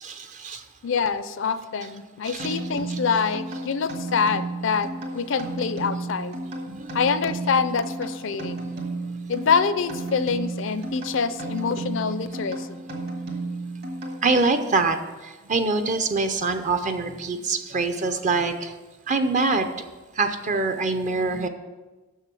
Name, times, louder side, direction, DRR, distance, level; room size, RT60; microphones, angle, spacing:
voice 1, 0.0-0.6 2.3-2.6 2.9-3.0 6.7-7.0 14.2-15.0 15.5-18.7 19.1-19.7 20.2-21.5, right 3 dB, 40° right, 8 dB, 0.6 m, -24 dB
voice 2, 0.8-6.4 6.9-8.6 9.3-12.8, left 5 dB, 65° left, 13 dB, 0.5 m, -25 dB
sound 1, 2.4-14.6, right 2 dB, 55° right, 2.0 m, -33 dB
6.7 x 6.5 x 7.5 m, 1.2 s
head